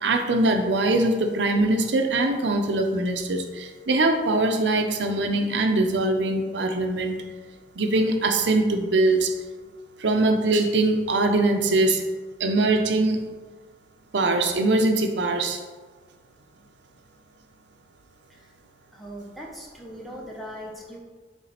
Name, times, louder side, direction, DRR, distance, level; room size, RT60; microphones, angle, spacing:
voice 1, 0.0-7.2 7.8-9.3 10.0-12.0 12.4-13.2 14.1-15.6, right 2 dB, 90° right, 5 dB, 0.7 m, -22 dB
voice 2, 18.9-21.0, equal, ahead, -3 dB, 0.9 m, -40 dB
7.1 x 3.3 x 4.3 m, 1.4 s
head